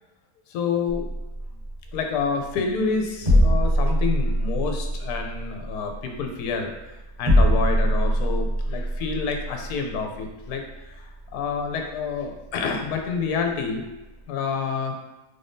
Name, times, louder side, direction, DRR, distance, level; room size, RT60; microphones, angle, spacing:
voice 1, 0.5-1.1 1.9-13.8 14.3-15.0, left 5 dB, 75° left, 3 dB, 1.1 m, -28 dB
sound 1, 0.9-14.2, equal, 45° right, 1.7 m, -25 dB
3.8 x 3.4 x 2.6 m, 1.0 s
omnidirectional pair, 1.7 m